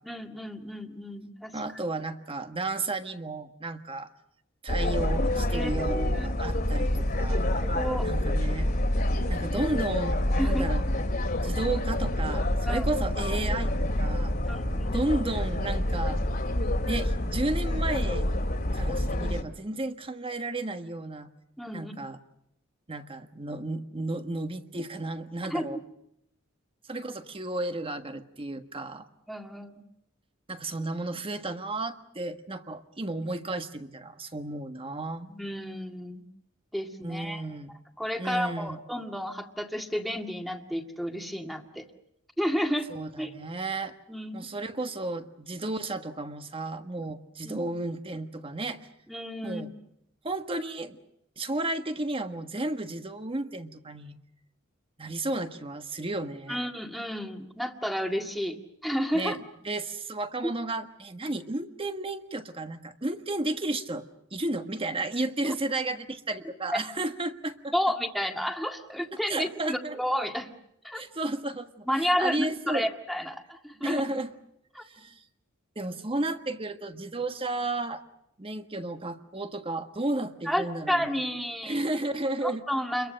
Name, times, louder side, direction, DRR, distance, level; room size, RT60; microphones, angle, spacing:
voice 1, 0.0-1.6 5.5-6.3 7.6-8.1 10.4-10.6 12.7-12.9 14.5-14.9 21.6-22.0 25.5-25.8 29.3-29.8 35.3-36.2 36.7-41.9 42.4-43.3 44.1-44.5 47.4-47.6 49.1-49.7 56.5-59.4 60.4-60.5 66.7-66.9 67.7-70.6 70.8-71.0 71.9-74.0 74.8-74.9 80.5-81.8 82.4-83.1, equal, ahead, 3 dB, 2.0 m, -31 dB
voice 2, 1.5-4.1 4.6-7.5 8.0-8.7 9.3-10.9 11.4-14.4 14.9-16.2 16.9-18.3 18.7-21.3 21.7-22.2 22.9-25.8 26.9-29.1 30.5-35.3 37.0-37.7 38.2-38.8 42.9-43.9 44.3-48.9 49.4-49.7 50.2-51.0 51.4-54.1 55.0-56.6 59.1-59.4 59.6-64.0 64.3-67.7 69.3-70.0 70.9-72.9 73.8-74.3 74.8-75.2 75.7-78.0 78.4-81.2 81.6-82.6, right 2 dB, 30° right, 8 dB, 1.5 m, -33 dB
sound 1, 4.7-19.4, left 1 dB, 50° left, 2.4 m, -27 dB
28.5 x 22.5 x 6.5 m, 0.78 s
head